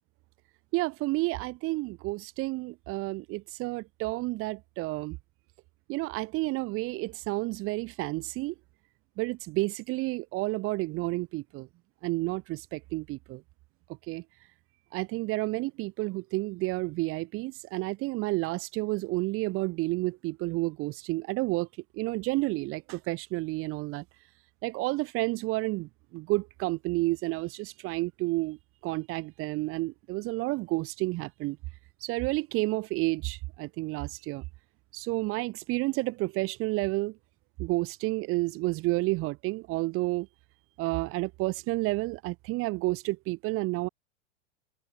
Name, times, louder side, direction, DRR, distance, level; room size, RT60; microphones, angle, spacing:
voice 1, 0.7-5.2 5.9-8.5 9.2-11.7 12.0-13.4 14.1-14.2 14.9-21.7 21.9-24.0 24.6-28.6 28.8-31.6 32.0-34.4 34.9-37.1 37.6-40.3 40.8-43.9, right 22 dB, 35° right, 0.7 m, -30 dB
hypercardioid pair, 110°, 38 cm